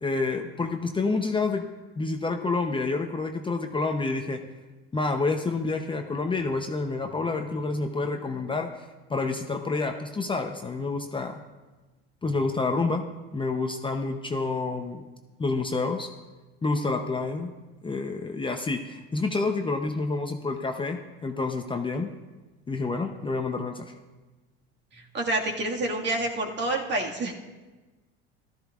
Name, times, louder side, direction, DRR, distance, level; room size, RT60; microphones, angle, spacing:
voice 1, 0.0-1.6 2.0-4.4 4.9-8.8 9.1-11.3 12.2-13.1 13.3-15.1 15.4-16.1 16.6-17.5 17.8-22.1 22.7-23.9, left 3 dB, 15° left, 4 dB, 0.7 m, -28 dB
voice 2, 25.1-27.3, right 2 dB, 35° right, 1 dB, 1.9 m, -28 dB
15.0 x 13.0 x 2.4 m, 1.2 s
supercardioid pair, 95°, 30 cm